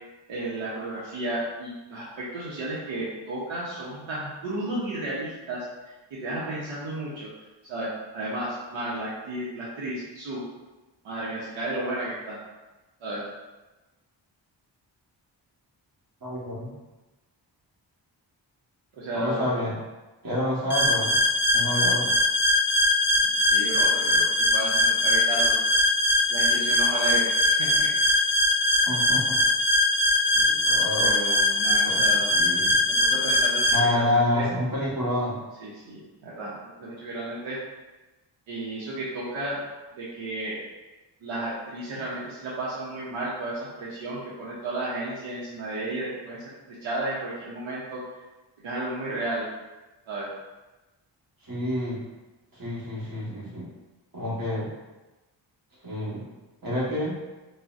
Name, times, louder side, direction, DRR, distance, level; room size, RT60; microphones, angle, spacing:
voice 1, 0.3-5.6 6.1-7.3 7.6-10.5 11.0-12.4 13.0-13.3 18.9-19.7 23.2-25.5 26.3-27.9 31.0-32.3 32.9-34.5 35.6-37.6 38.5-39.6 40.0-40.6 41.2-46.4 46.8-48.0 48.6-49.5 50.1-50.3, right 1 dB, 85° right, -7 dB, 0.7 m, -33 dB
voice 2, 16.2-16.7 19.1-19.7 20.2-21.2 21.5-22.1 28.9-29.4 30.3-31.1 31.8-32.0 32.3-32.7 33.7-35.4 51.4-52.0 52.5-53.7 54.1-54.7 55.8-56.2 56.6-57.2, left 1 dB, 50° right, -6 dB, 1.2 m, -28 dB
sound 1, 20.7-33.8, left 2 dB, 25° left, 0.3 m, -22 dB
3.8 x 2.1 x 2.4 m, 1.1 s
cardioid pair, 70°, 46 cm